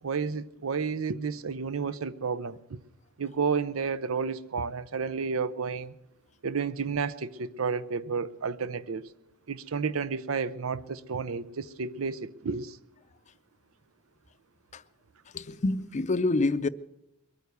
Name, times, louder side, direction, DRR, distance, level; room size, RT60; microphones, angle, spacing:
voice 1, 0.0-2.8 3.2-5.9 6.4-9.0 9.5-12.8, right 5 dB, 85° right, 0.6 m, -31 dB
voice 2, 15.3-16.7, left 2 dB, 35° left, 0.5 m, -27 dB
22.5 x 9.3 x 6.7 m
head